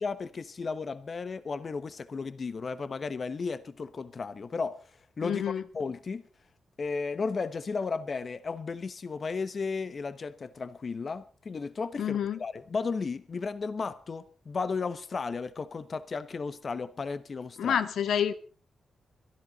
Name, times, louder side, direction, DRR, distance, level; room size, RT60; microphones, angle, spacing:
voice 1, 0.0-4.8 5.2-6.2 6.8-17.8, left 4 dB, 45° left, 1.0 m, -34 dB
voice 2, 5.2-5.6 12.0-12.4 17.6-18.3, left 8 dB, 85° left, 1.1 m, -28 dB
25.0 x 11.0 x 4.0 m
cardioid pair, 85°, 0 cm